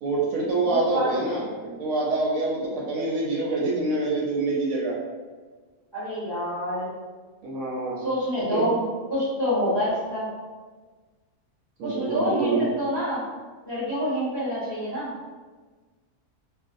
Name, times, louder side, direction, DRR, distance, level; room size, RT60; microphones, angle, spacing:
voice 1, 0.0-5.0 7.4-8.0 8.5-8.7 11.8-12.6, right 3 dB, 70° right, -4 dB, 0.9 m, -26 dB
voice 2, 0.7-1.1 5.9-6.9 8.0-8.8 9.1-10.3 11.8-13.2 13.7-15.1, equal, 25° left, -10 dB, 0.6 m, -27 dB
2.5 x 2.1 x 2.5 m, 1.4 s
omnidirectional pair, 1.6 m